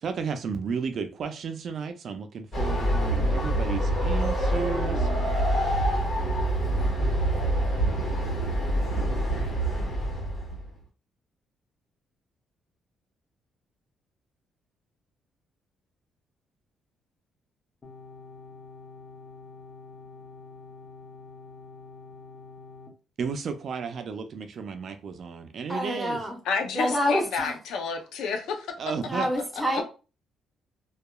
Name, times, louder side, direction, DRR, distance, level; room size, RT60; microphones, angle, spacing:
voice 1, 0.0-5.1 23.2-26.2 28.8-29.3, right 5 dB, 60° right, 0.4 m, -33 dB
Train, 2.5-10.7, right 1 dB, 55° left, 1.4 m, -26 dB
sound 1, 2.6-5.5, left 2 dB, 15° left, 1.2 m, -41 dB
sound 2, 17.8-22.9, left 4 dB, 40° left, 0.8 m, -46 dB
voice 2, 25.7-26.4 26.7-27.6 29.1-29.8, equal, 10° right, 0.9 m, -27 dB
voice 3, 26.5-28.7, left 5 dB, 85° left, 0.5 m, -30 dB
2.7 x 2.3 x 2.2 m
cardioid pair, 90°, 0 cm